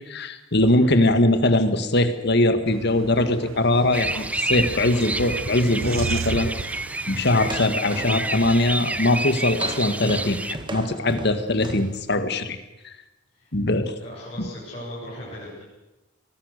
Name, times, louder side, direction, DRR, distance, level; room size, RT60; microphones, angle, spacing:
voice 1, 0.1-6.5 7.1-12.6 13.5-13.9 14.4-14.5, left 1 dB, 55° left, 9 dB, 1.9 m, -21 dB
sound 1, 2.7-7.8, right 4 dB, 85° right, 0.8 m, -34 dB
sound 2, 3.7-5.9 6.3-6.5 6.9-7.1 7.4-12.0, right 1 dB, 25° right, 1.9 m, -38 dB
sound 3, 3.9-10.5, right 2 dB, 5° right, 0.8 m, -29 dB
voice 2, 14.0-15.6, left 1 dB, 30° left, -7 dB, 7.8 m, -38 dB
25.0 x 20.5 x 6.8 m, 1.0 s
head